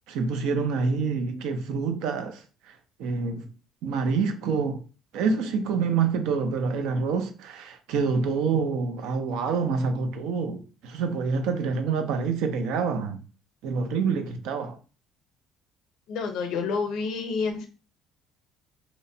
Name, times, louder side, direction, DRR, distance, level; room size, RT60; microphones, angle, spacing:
voice 1, 0.1-2.7 3.0-3.5 3.8-4.8 5.1-13.2 13.6-14.8, right 5 dB, 75° right, 0.5 m, -27 dB
voice 2, 16.1-17.7, left 5 dB, 60° left, 0.6 m, -29 dB
2.8 x 2.1 x 2.6 m
cardioid pair, 150°, 0 cm